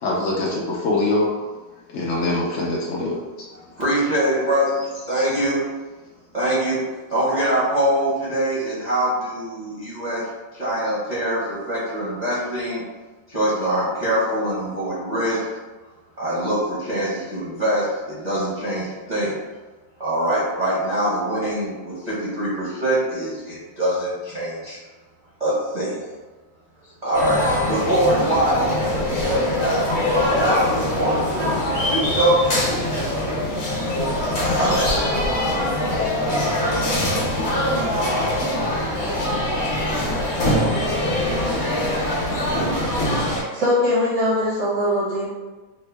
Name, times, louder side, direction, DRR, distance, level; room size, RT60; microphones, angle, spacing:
voice 1, 0.0-1.3 1.9-3.2 5.2-5.3, left 2 dB, 85° left, -4 dB, 0.6 m, -23 dB
voice 2, 3.5-4.7 5.1-5.6 6.3-6.8 7.1-12.8 13.3-15.5 16.2-19.4 20.0-24.8 25.4-26.0 27.0-28.9 29.2-32.4 34.5-35.4, right 1 dB, 40° right, -9 dB, 0.6 m, -23 dB
sound 1, 27.1-43.4, left 1 dB, 45° left, 0.9 m, -23 dB
voice 3, 43.3-45.3, left 1 dB, 65° right, -7 dB, 0.9 m, -21 dB
3.6 x 2.0 x 3.3 m, 1.3 s
omnidirectional pair, 2.0 m